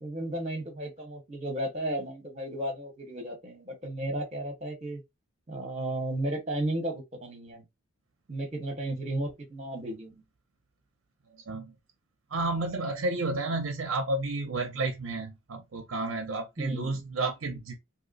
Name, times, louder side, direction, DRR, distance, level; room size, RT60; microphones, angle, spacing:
voice 1, 0.0-5.0 5.5-7.7 8.3-10.3 16.6-17.0, right 1 dB, 30° right, 1.0 m, -34 dB
voice 2, 12.3-17.8, right 2 dB, 65° right, 0.5 m, -31 dB
2.8 x 2.0 x 3.9 m
head